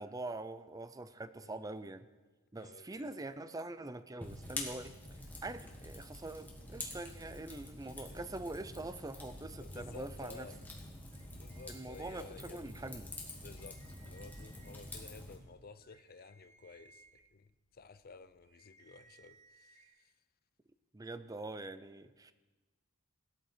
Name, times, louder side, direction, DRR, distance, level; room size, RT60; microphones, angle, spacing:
voice 1, 0.0-2.1 2.5-5.0 5.4-10.5 11.7-13.1 20.9-22.3, right 2 dB, 15° right, 0.5 m, -44 dB
voice 2, 2.6-3.1 8.1-8.2 9.5-10.6 11.3-12.6 13.4-17.5 17.7-19.8, left 4 dB, 40° left, 0.5 m, -54 dB
Fire, 4.2-15.4, left 1 dB, 10° left, 1.8 m, -47 dB
sound 1, 11.1-12.7 13.1-13.2 13.4-15.0 15.5-19.9, right 3 dB, 30° right, 1.4 m, -64 dB
17.5 x 12.5 x 4.5 m
head